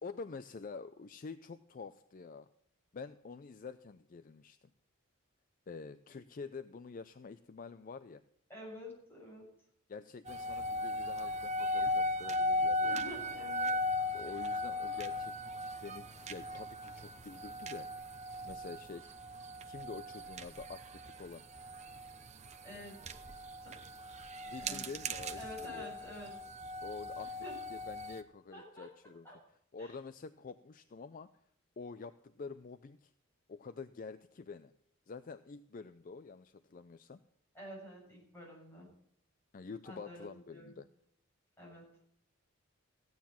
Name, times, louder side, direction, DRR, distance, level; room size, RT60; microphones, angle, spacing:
voice 1, 0.0-2.5 2.9-4.7 5.7-8.2 9.9-13.0 14.1-15.4 15.8-17.9 18.4-19.1 19.7-21.4 24.5-25.9 26.8-29.3 29.7-31.3 31.8-33.1 33.5-34.7 35.1-37.2 39.5-40.9, left 4 dB, 40° left, 12 dB, 0.4 m, -47 dB
voice 2, 8.5-9.5 12.8-13.7 22.6-23.1 23.6-23.8 24.6-24.9 25.3-26.4 27.4-27.6 28.5-28.9 29.2-29.4 29.8-29.9 37.5-38.9 39.9-40.8 41.6-41.8, left 1 dB, 10° left, -4 dB, 7.5 m, -48 dB
sound 1, 10.3-28.2, left 1 dB, 30° right, 0.8 m, -38 dB
15.0 x 9.5 x 5.8 m, 0.69 s
head